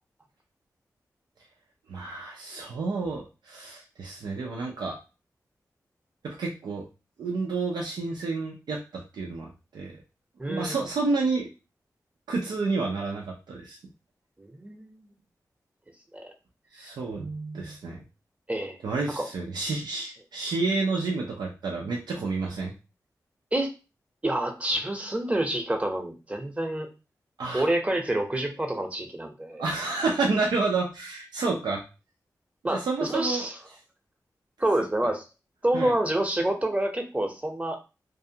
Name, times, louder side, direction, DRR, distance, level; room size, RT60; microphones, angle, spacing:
voice 1, 1.9-5.0 6.2-6.9 7.2-10.0 10.5-11.5 12.3-13.8 16.7-18.0 18.8-22.7 27.4-27.7 29.6-31.8 32.7-33.5 35.7-35.9, right 3 dB, 85° right, -1 dB, 0.5 m, -30 dB
voice 2, 10.4-10.8 14.4-15.1 16.1-16.3 16.8-16.9 18.5-18.8 19.2-19.3 23.5-23.7 24.2-26.9 27.5-29.6 32.6-33.6 34.6-35.3 35.6-37.8, right 1 dB, 20° right, 3 dB, 0.8 m, -28 dB
2.6 x 2.3 x 2.7 m, 0.30 s
cardioid pair, 40°, 7 cm